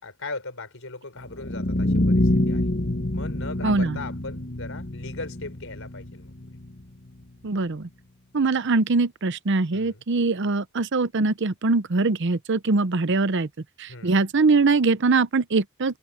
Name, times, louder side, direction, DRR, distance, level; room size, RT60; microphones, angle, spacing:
voice 1, 0.0-2.7 3.1-6.3 9.7-10.0 13.9-14.2, left 3 dB, 65° left, 5.1 m, -38 dB
sound 1, 1.3-7.3, left 1 dB, 50° left, 2.1 m, -26 dB
voice 2, 3.6-4.0 7.4-7.9 8.3-13.5 13.8-16.0, right 3 dB, 60° right, 0.7 m, -22 dB
open air
head